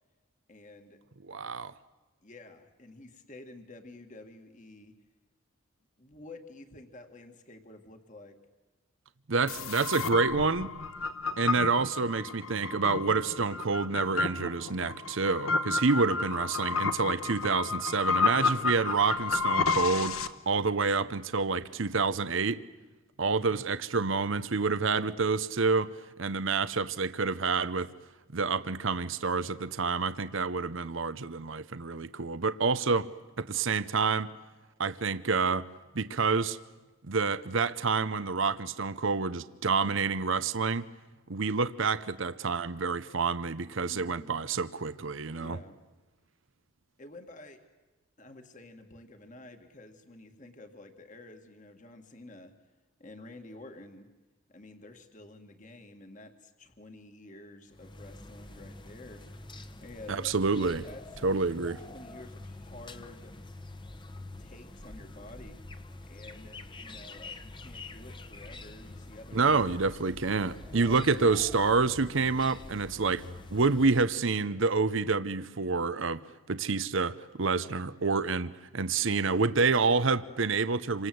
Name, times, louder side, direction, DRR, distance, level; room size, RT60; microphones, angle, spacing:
voice 1, 0.5-1.0 1.6-1.8 2.2-4.9 6.0-8.4 15.9-16.9 23.2-23.6 43.8-44.4 45.4-45.8 47.0-47.6 48.2-52.5 53.0-54.1 54.5-59.2 59.8-60.3 60.9-61.0 61.9-63.3 64.4-65.6 66.0-69.9 70.7-71.4, left 2 dB, 35° left, 2.1 m, -50 dB
voice 2, 1.3-1.7 9.3-10.7 11.4-22.6 23.2-25.9 26.2-27.9 28.3-33.1 33.4-34.3 34.8-35.7 35.9-36.6 37.0-40.9 41.3-45.6 60.1-60.9 61.2-61.8 69.3-73.2 73.5-76.2 76.5-81.1, right 4 dB, 65° right, 0.8 m, -28 dB
sound 1, 9.5-20.3, left 4 dB, 85° left, 1.3 m, -31 dB
sound 2, 57.7-74.0, left 2 dB, 20° left, 1.2 m, -46 dB
28.5 x 25.5 x 7.9 m
head